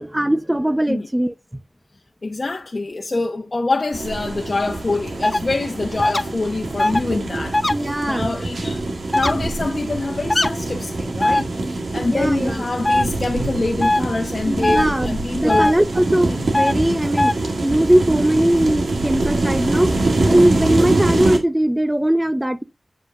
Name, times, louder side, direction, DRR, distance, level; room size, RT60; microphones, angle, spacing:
voice 1, 0.0-1.3 7.7-8.3 12.1-12.6 14.4-17.3 17.6-19.9 20.2-22.6, right 1 dB, 10° right, 0.7 m, -20 dB
voice 2, 2.2-8.8 9.1-15.7, left 3 dB, 50° left, 1.1 m, -25 dB
sound 1, 3.9-21.4, right 2 dB, 90° right, 1.7 m, -24 dB
sound 2, 5.2-5.4 6.0-6.2 6.8-7.0 7.5-7.7 9.1-9.3 10.3-10.5 11.2-11.4 12.8-13.0 13.8-14.0 14.6-14.8 15.5-15.7 16.5-16.7 17.2-17.3, left 1 dB, 25° left, 0.5 m, -18 dB
7.9 x 7.8 x 2.6 m
wide cardioid pair, 80°, 0 cm